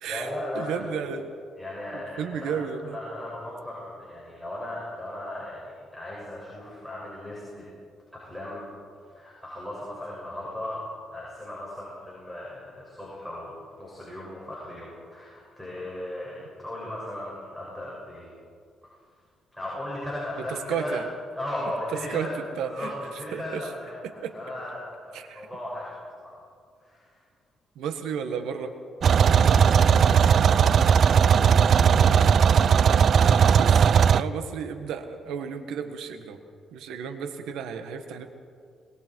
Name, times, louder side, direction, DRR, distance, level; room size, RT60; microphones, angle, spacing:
voice 1, 0.1-1.0 1.6-2.6 2.8-7.6 8.1-10.9 11.1-18.3 18.8-19.0 19.5-21.0 21.3-22.3 22.6-26.4 26.8-27.2 29.4-30.2, left 1 dB, ahead, -6 dB, 6.9 m, -37 dB
voice 2, 0.6-1.3 1.9-3.0 20.7-21.0 22.1-22.3 22.6-22.9 23.3-23.7 24.2-24.3 25.1-25.5 27.8-28.7 31.8-33.8 34.1-36.4 36.7-38.3, right 7 dB, 85° right, 8 dB, 1.7 m, -33 dB
sound 1, 29.0-34.2, right 7 dB, 55° right, 0.5 m, -18 dB
24.5 x 22.0 x 4.8 m, 2.2 s
cardioid pair, 90°, 0 cm